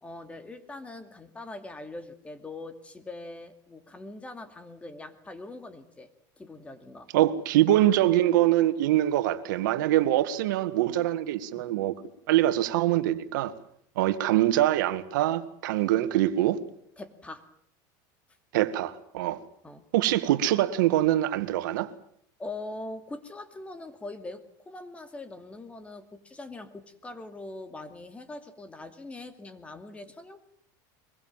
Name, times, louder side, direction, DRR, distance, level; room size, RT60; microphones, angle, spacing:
voice 1, 0.0-6.1 6.4-7.1 11.6-11.7 17.0-17.4 19.6-19.8 22.4-30.4, left 2 dB, 10° left, 2.4 m, -42 dB
voice 2, 7.1-11.9 12.3-13.5 14.0-16.6 18.5-19.4 19.9-21.9, right 13 dB, 85° right, 1.8 m, -24 dB
23.5 x 22.0 x 7.4 m
supercardioid pair, 135°, 10 cm